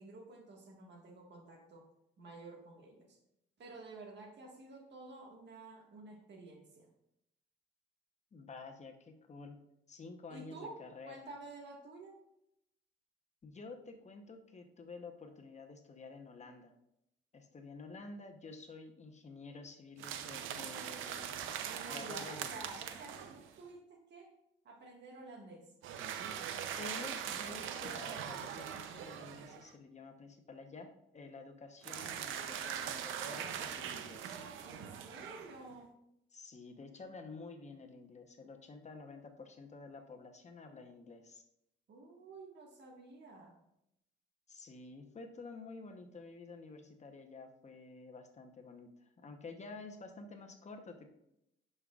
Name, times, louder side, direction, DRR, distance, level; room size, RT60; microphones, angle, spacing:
voice 1, 0.0-1.9 2.2-3.2 3.6-6.9 10.3-12.2 21.7-24.3 24.7-25.7 34.6-35.9 41.9-43.6, right 2 dB, 60° right, 1 dB, 1.7 m, -51 dB
voice 2, 8.3-11.2 13.4-16.7 17.3-21.4 21.9-22.5 26.8-34.4 36.3-41.4 44.5-51.1, left 3 dB, 35° left, 4 dB, 0.9 m, -50 dB
sound 1, 20.0-23.6 25.8-29.7 31.8-35.7, right 9 dB, 85° right, 0.6 m, -42 dB
11.0 x 5.5 x 2.4 m, 0.82 s
cardioid pair, 90°, 20 cm